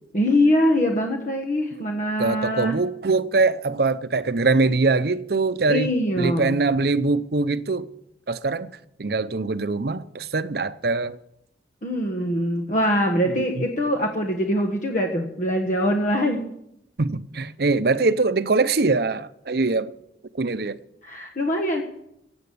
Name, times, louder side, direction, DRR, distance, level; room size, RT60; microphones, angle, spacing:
voice 1, 0.1-2.8 5.7-6.6 11.8-16.5 21.0-21.8, equal, 45° left, 1.4 m, -23 dB
voice 2, 2.2-5.9 6.2-7.9 8.3-8.7 9.0-11.2 13.6-13.7 17.0-19.9 20.3-20.8, right 3 dB, 60° right, 0.7 m, -22 dB
16.0 x 8.8 x 8.5 m
head